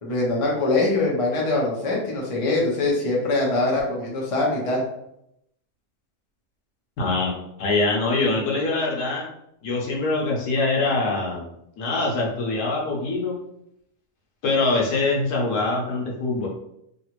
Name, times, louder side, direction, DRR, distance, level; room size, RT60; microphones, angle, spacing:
voice 1, 0.0-4.8, left 2 dB, 35° left, -3 dB, 0.5 m, -23 dB
voice 2, 7.0-9.3 9.6-11.5 11.8-13.4 14.4-16.5, left 3 dB, 70° left, -2 dB, 1.3 m, -24 dB
3.2 x 2.5 x 3.0 m, 0.77 s
omnidirectional pair, 1.8 m